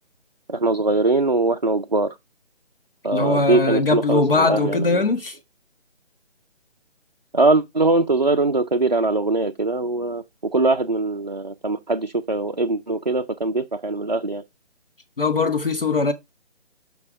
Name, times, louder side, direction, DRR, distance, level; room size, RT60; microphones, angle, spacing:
voice 1, 0.5-2.2 3.0-5.0 7.3-10.2 10.5-14.4, right 2 dB, 40° right, 0.5 m, -21 dB
voice 2, 3.1-5.4 15.2-16.1, left 3 dB, 50° left, 1.0 m, -20 dB
6.1 x 5.5 x 4.7 m
hypercardioid pair, 180°, 35 cm